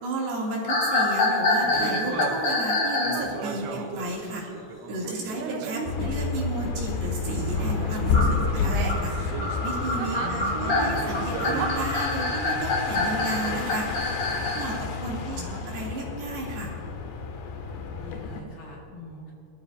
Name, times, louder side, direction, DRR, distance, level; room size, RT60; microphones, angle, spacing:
voice 1, 0.0-4.4 4.9-9.1 9.6-13.9 14.6-16.8, right 2 dB, 60° right, -5 dB, 4.4 m, -33 dB
sound 1, 0.7-3.3 8.1-14.7, left 2 dB, 40° left, 4.0 m, -26 dB
sound 2, 1.6-6.9 7.3-11.7, right 6 dB, 80° right, 3.1 m, -36 dB
sound 3, 5.9-18.4, left 4 dB, 75° left, 3.2 m, -30 dB
voice 2, 10.1-11.0 15.2-15.6 17.9-19.3, left 1 dB, 60° left, -3 dB, 3.5 m, -40 dB
24.0 x 13.0 x 2.8 m, 2.9 s
omnidirectional pair, 5.0 m